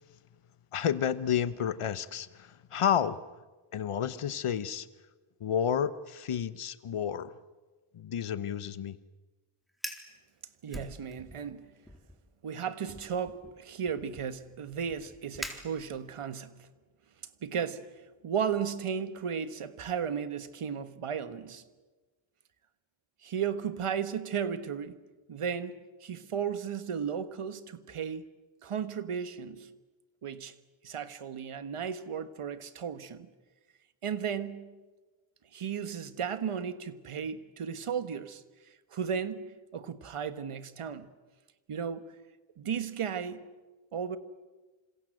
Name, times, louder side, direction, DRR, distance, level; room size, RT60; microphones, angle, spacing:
voice 1, 0.7-3.2 3.7-4.9 5.4-7.3 7.9-9.0, left 8 dB, 85° left, 1.2 m, -30 dB
Fire, 9.7-10.1 10.7-11.5 11.8-12.2 12.9-16.2, equal, ahead, 3.9 m, -44 dB
voice 2, 10.6-11.7 12.4-16.7 17.4-17.9 18.2-21.6 23.2-25.0 25.3-28.3 28.6-29.7 30.2-30.5 30.8-33.3 34.0-34.8 35.5-38.4 38.9-41.1 41.7-42.1 42.6-43.4 43.9-44.2, right 7 dB, 85° right, 1.6 m, -35 dB
28.0 x 26.5 x 7.8 m
cardioid pair, 55°, 50 cm